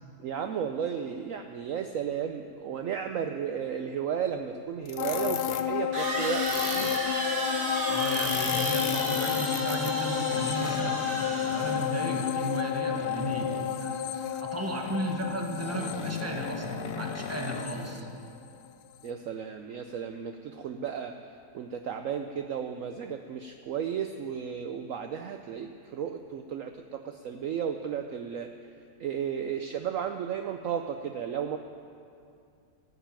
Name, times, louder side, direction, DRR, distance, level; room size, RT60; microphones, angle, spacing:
voice 1, 0.2-7.0 19.0-21.2 21.5-28.5 29.0-31.6, right 8 dB, 65° right, 6 dB, 0.9 m, -34 dB
sound 1, 4.3-4.4 5.9-12.0, right 2 dB, 85° right, 2.7 m, -34 dB
sound 2, 4.9-5.7 6.3-7.0 7.9-11.8 12.8-13.8 14.8-15.1 15.5-17.9, left 6 dB, 55° left, 0.7 m, -37 dB
sound 3, 5.0-18.7 19.1-19.2, left 10 dB, 75° left, 1.2 m, -31 dB
voice 2, 7.9-11.0 11.5-18.1, right 1 dB, 10° right, 1 dB, 1.4 m, -34 dB
16.0 x 8.1 x 9.0 m, 2.4 s
omnidirectional pair, 1.8 m